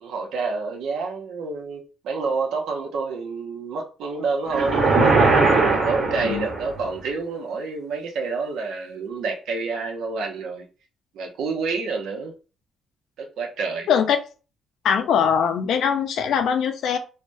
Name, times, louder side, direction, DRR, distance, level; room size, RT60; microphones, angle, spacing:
voice 1, 0.0-4.9 5.5-10.7 11.1-12.3 13.2-13.9, right 4 dB, 80° right, 0.7 m, -28 dB
sound 1, 4.5-6.8, right 3 dB, 55° right, 1.2 m, -19 dB
voice 2, 14.8-17.0, left 7 dB, 75° left, 0.4 m, -21 dB
3.2 x 2.1 x 2.6 m
cardioid pair, 90°, 0 cm